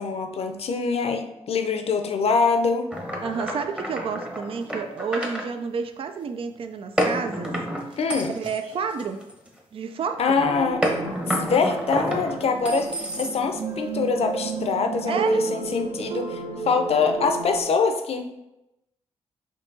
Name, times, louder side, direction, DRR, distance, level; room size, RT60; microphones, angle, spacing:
voice 1, 0.0-2.9 8.0-8.3 10.2-10.9 11.3-18.4, left 5 dB, 60° left, 6 dB, 0.6 m, -24 dB
sound 1, 2.9-5.5 7.0-9.6 10.8-13.6, equal, 10° right, 0.9 m, -29 dB
voice 2, 3.2-7.5 7.9-8.0 8.3-9.2 9.7-10.4 15.1-15.4, right 5 dB, 55° right, 7 dB, 0.4 m, -30 dB
sound 2, 10.4-17.6, right 4 dB, 70° right, 0.8 m, -32 dB
4.6 x 2.8 x 3.9 m, 0.91 s
cardioid pair, 75°, 11 cm